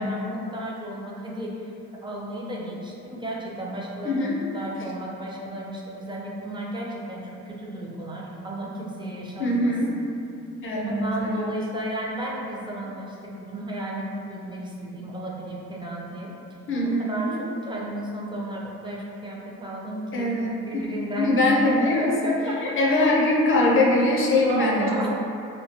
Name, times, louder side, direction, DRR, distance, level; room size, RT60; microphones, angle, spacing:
voice 1, 0.0-1.7 2.0-9.7 10.9-16.3 17.1-17.3 17.6-20.3 20.7-21.4 21.6-22.6 24.3-25.1, right 1 dB, 15° right, -3 dB, 0.4 m, -33 dB
voice 2, 4.0-4.4 9.4-9.9 10.6-11.5 16.7-17.4 20.1-20.9 21.2-22.1 22.6-25.1, left 1 dB, 45° left, -3 dB, 0.4 m, -22 dB
2.2 x 2.1 x 2.7 m, 2.7 s
cardioid pair, 90°, 30 cm